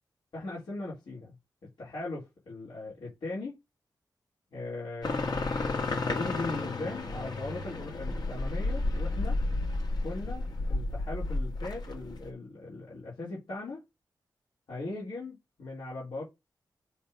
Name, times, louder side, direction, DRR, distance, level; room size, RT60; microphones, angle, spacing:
voice 1, 0.3-1.3 1.6-3.6 4.5-9.4 10.0-13.8 14.7-16.2, left 2 dB, 85° left, 3.7 m, -39 dB
sound 1, 5.0-12.3, left 2 dB, 65° left, 1.9 m, -32 dB
6.9 x 3.7 x 5.4 m
wide cardioid pair, 115°, 8 cm